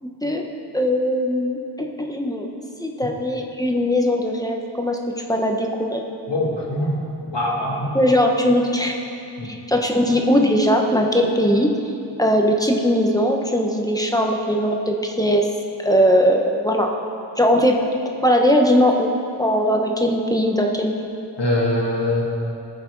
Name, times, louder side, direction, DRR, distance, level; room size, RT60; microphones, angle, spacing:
voice 1, 0.0-0.4 0.7-2.5 2.8-5.0 5.3-6.0 7.9-9.0 9.4-11.7 12.2-15.5 15.8-16.9 17.4-17.8 18.2-19.1 19.4-21.1, equal, 10° left, 1 dB, 1.3 m, -19 dB
voice 2, 6.3-7.9 9.4-9.5 9.9-10.0 21.4-22.2, left 1 dB, 75° left, -3 dB, 2.3 m, -23 dB
18.0 x 6.6 x 4.8 m, 2.7 s
wide cardioid pair, 40°, 43 cm